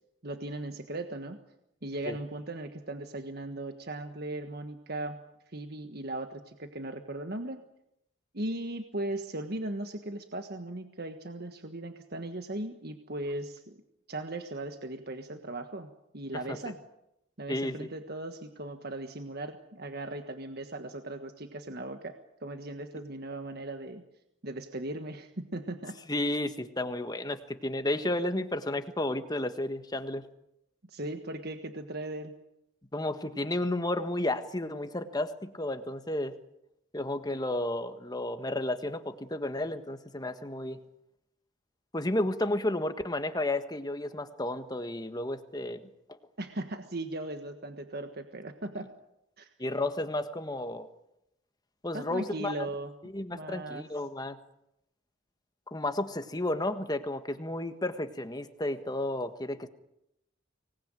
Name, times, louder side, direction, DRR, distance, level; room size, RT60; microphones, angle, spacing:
voice 1, 0.2-1.4 1.8-5.2 5.5-7.6 8.3-13.8 14.1-16.8 17.4-24.0 24.4-26.0 30.9-32.3 46.4-48.9 49.4-49.5 51.9-52.9 53.3-53.9, right 2 dB, 55° right, 7 dB, 1.5 m, -38 dB
voice 2, 17.5-17.9 26.1-30.2 32.9-36.3 36.9-40.8 41.9-45.8 49.6-50.9 51.8-52.5 53.0-54.4 55.7-59.7, left 1 dB, 20° left, 9 dB, 1.5 m, -32 dB
25.0 x 19.5 x 9.1 m, 0.84 s
head